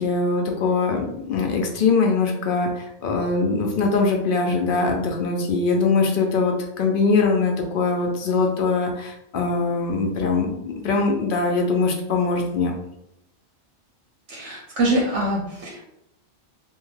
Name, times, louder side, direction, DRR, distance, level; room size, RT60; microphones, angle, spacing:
voice 1, 0.0-12.7, left 4 dB, 60° left, 1 dB, 0.6 m, -22 dB
voice 2, 14.3-15.8, right 1 dB, 85° right, -3 dB, 1.0 m, -24 dB
2.7 x 2.2 x 3.1 m, 0.81 s
omnidirectional pair, 1.2 m